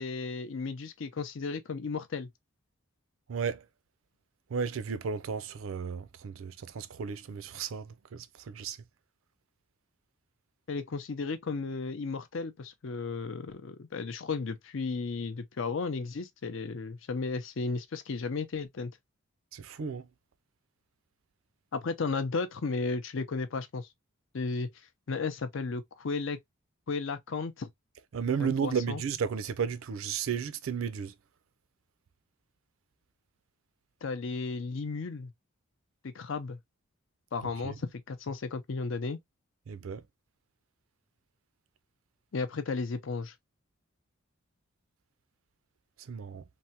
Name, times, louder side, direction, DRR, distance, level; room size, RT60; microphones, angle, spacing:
voice 1, 0.0-2.3 10.7-18.9 21.7-23.9 24.3-24.7 25.1-26.4 26.9-27.7 28.4-29.0 34.0-35.3 36.0-36.6 37.3-39.2 42.3-43.3, left 4 dB, 60° left, 0.5 m, -34 dB
voice 2, 3.3-3.7 4.5-8.8 19.5-20.1 28.1-31.1 37.4-37.8 39.7-40.0 46.0-46.4, right 6 dB, 70° right, 0.4 m, -34 dB
3.3 x 2.1 x 2.7 m
head